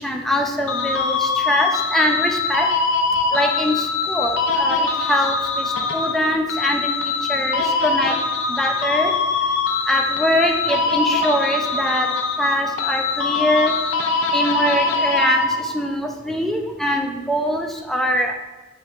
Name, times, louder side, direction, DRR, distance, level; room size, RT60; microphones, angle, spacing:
voice 1, 0.0-2.7 3.3-8.1 8.5-9.1 9.9-12.1 12.4-13.7 14.3-18.3, equal, ahead, 2 dB, 0.3 m, -23 dB
sound 1, 0.7-15.9, left 4 dB, 80° left, 0.5 m, -22 dB
5.1 x 4.2 x 2.4 m, 1.1 s
head